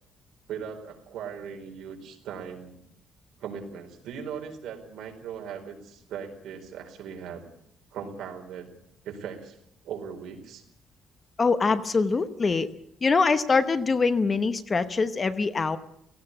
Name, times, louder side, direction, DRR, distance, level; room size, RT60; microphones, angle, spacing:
voice 1, 0.5-2.7 3.4-7.4 7.9-8.7 9.0-9.6 9.8-10.6, right 7 dB, 70° right, 3 dB, 4.4 m, -38 dB
voice 2, 11.4-12.7 13.0-15.8, left 4 dB, 25° left, 11 dB, 0.9 m, -23 dB
17.5 x 16.5 x 9.8 m, 0.73 s
cardioid pair, 180°, 0 cm